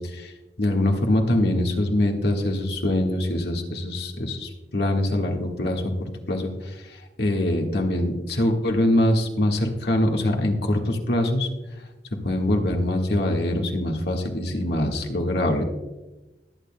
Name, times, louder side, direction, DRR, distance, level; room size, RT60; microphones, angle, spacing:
voice 1, 0.6-5.8 6.3-6.5 7.2-11.5 12.2-15.6, left 1 dB, 65° left, 1 dB, 1.6 m, -23 dB
20.5 x 9.1 x 2.2 m, 1.1 s
head